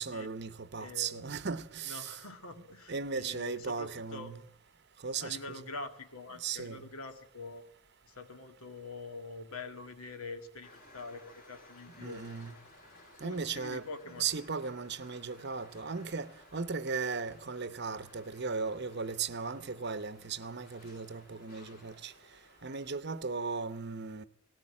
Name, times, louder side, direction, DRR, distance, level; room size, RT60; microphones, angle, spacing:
voice 1, 0.0-2.2 2.9-4.4 5.0-5.7 6.4-6.8 12.0-12.5 13.2-13.9 14.2-22.1 22.6-24.2, right 5 dB, 50° right, 0.8 m, -37 dB
voice 2, 0.8-1.2 1.9-4.3 5.2-7.6 8.1-12.4 13.2-14.3, left 3 dB, 70° left, 2.0 m, -45 dB
sound 1, 10.6-22.9, left 2 dB, 40° left, 3.4 m, -59 dB
18.5 x 18.5 x 8.6 m
head